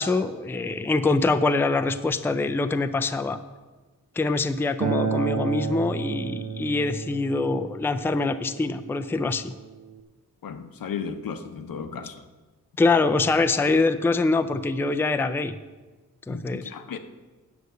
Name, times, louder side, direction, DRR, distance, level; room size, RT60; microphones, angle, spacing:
voice 1, 0.0-3.4 4.2-9.5 12.8-15.6 16.3-16.7, left 3 dB, 5° left, 10 dB, 0.3 m, -24 dB
Acoustic guitar, 4.8-10.0, right 6 dB, 65° right, 0.8 m, -32 dB
voice 2, 10.4-12.3 16.3-17.0, left 6 dB, 90° left, 8 dB, 0.9 m, -35 dB
9.6 x 8.1 x 6.4 m, 1.3 s
wide cardioid pair, 170°, 33 cm